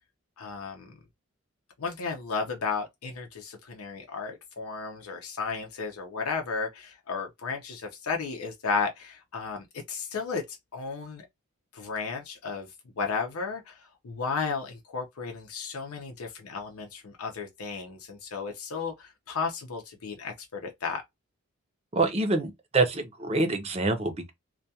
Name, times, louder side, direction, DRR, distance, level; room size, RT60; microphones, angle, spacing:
voice 1, 0.4-0.9 1.8-11.2 11.7-12.7 13.0-21.0, left 5 dB, 90° left, 0.6 m, -34 dB
voice 2, 21.9-24.3, right 3 dB, 30° right, 0.5 m, -26 dB
2.2 x 2.2 x 2.6 m
head